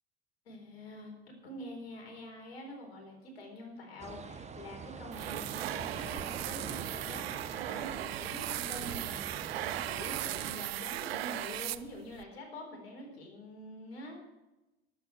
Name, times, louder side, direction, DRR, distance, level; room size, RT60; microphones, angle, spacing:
voice 1, 0.5-14.2, left 1 dB, 70° left, 2 dB, 4.2 m, -46 dB
sound 1, 4.0-10.5, right 5 dB, 20° right, 1.3 m, -44 dB
sound 2, 5.1-12.2, right 14 dB, 70° right, 0.6 m, -37 dB
20.0 x 8.5 x 4.3 m, 1.0 s
figure-of-eight pair, 65°, 31 cm